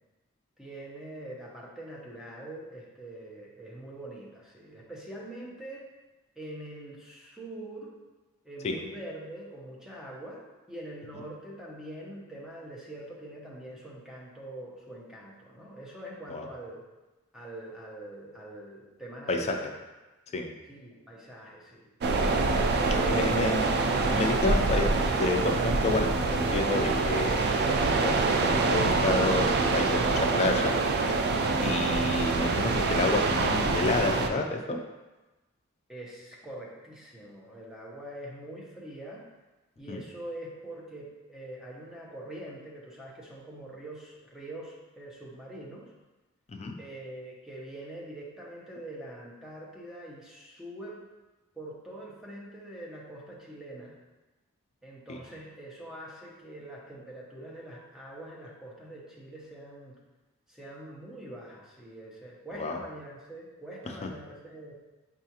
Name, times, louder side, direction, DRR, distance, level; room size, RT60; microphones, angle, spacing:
voice 1, 0.6-5.8 6.4-7.9 8.4-10.4 10.7-16.8 17.3-19.7 20.7-21.9 22.8-23.7 35.9-39.2 39.8-45.8 46.8-51.0 51.6-54.0 54.8-59.9 60.5-64.7, right 1 dB, 5° right, -4 dB, 0.6 m, -44 dB
sound 1, 22.0-34.3, right 3 dB, 50° right, 0.3 m, -26 dB
voice 2, 23.1-23.6 24.1-24.9 25.2-27.4 27.7-30.7 31.6-34.8 39.9-40.0 46.5-46.7 55.1-55.2 62.5-62.8, left 2 dB, 30° left, 3 dB, 0.3 m, -29 dB
5.5 x 2.4 x 2.8 m, 1.1 s
head